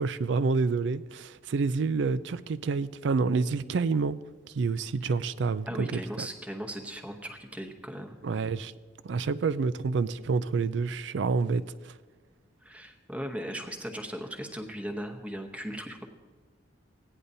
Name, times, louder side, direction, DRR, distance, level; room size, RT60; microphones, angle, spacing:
voice 1, 0.0-4.2 4.5-6.3 8.2-8.7 9.0-11.6, right 4 dB, 65° right, 0.4 m, -28 dB
voice 2, 5.7-8.2 12.6-16.1, equal, 5° right, 0.9 m, -38 dB
16.5 x 9.9 x 2.7 m
head